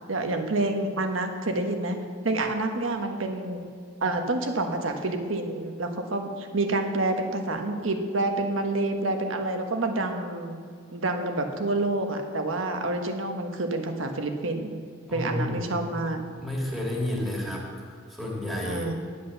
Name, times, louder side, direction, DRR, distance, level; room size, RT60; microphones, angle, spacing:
voice 1, 0.1-2.0 2.2-3.7 4.0-10.6 10.9-14.8 15.1-16.2 18.6-18.9, right 2 dB, 80° right, 5 dB, 1.3 m, -28 dB
voice 2, 15.1-15.7 16.4-18.9, left 1 dB, ahead, -3 dB, 2.4 m, -31 dB
10.5 x 8.4 x 6.9 m, 2.1 s
head